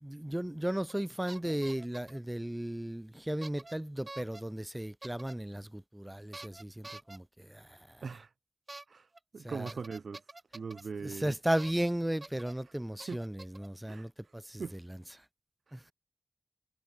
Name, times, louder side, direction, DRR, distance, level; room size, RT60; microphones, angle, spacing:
voice 1, 0.0-7.2 11.2-13.3 13.6-14.1 14.5-14.6 15.7-15.9, right 1 dB, 10° right, 3.2 m, -34 dB
sound 1, 0.9-1.0 1.3-2.2 3.4-3.7 4.1-4.4 5.0-5.3 6.3-7.2 8.7-8.8 9.1-9.2 9.7-10.8 11.6-11.9 12.2-12.5 13.0-13.7, right 2 dB, 35° right, 7.5 m, -47 dB
voice 2, 8.0-8.3 8.9-11.4 12.6-13.2 13.9-14.8 15.7-15.9, right 5 dB, 85° right, 5.9 m, -42 dB
wide cardioid pair, 80°, 0 cm